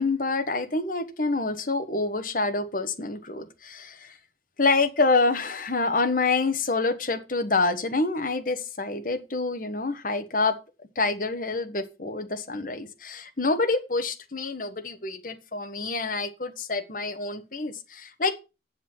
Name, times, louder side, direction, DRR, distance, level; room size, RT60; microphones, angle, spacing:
voice 1, 0.0-4.1 4.6-10.6 10.9-18.3, left 3 dB, 50° left, 1.4 m, -27 dB
7.9 x 7.3 x 5.6 m
head